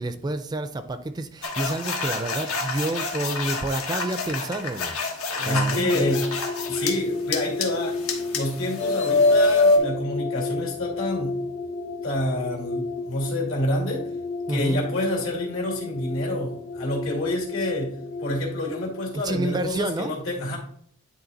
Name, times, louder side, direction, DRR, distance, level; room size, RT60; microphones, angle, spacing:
voice 1, 0.0-5.1 5.4-6.1 14.5-14.8 19.1-20.2, right 2 dB, 20° right, 11 dB, 0.3 m, -29 dB
sound 1, 1.4-6.9 7.3-9.8, left 3 dB, 90° left, 1.4 m, -25 dB
voice 2, 5.3-6.3 6.7-8.0 8.3-11.4 12.0-14.1 14.5-20.6, left 1 dB, 75° left, -1 dB, 2.3 m, -28 dB
sound 2, 5.7-19.6, left 3 dB, 50° left, 0.5 m, -32 dB
10.0 x 3.6 x 4.0 m, 0.63 s
head